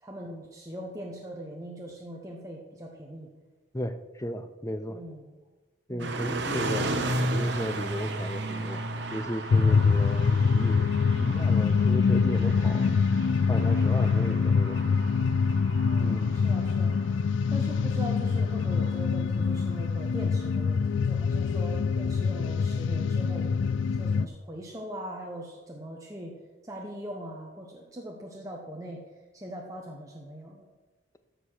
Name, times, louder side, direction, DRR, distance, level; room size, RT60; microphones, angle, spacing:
voice 1, 0.0-3.3 4.9-5.3 5.9-6.2 9.6-10.0 14.1-14.5 15.9-17.0 17.5-23.5 24.0-26.4 26.6-29.0 29.3-30.7, right 1 dB, 15° right, -1 dB, 1.0 m, -41 dB
voice 2, 3.7-5.0 5.9-6.9 7.2-12.9 13.5-14.9 16.0-16.4, equal, 15° left, 9 dB, 0.6 m, -35 dB
sound 1, 6.0-20.0, right 2 dB, 60° right, 1.0 m, -35 dB
sound 2, 9.5-24.3, left 5 dB, 65° left, 0.3 m, -25 dB
14.0 x 4.9 x 6.4 m, 1.2 s
head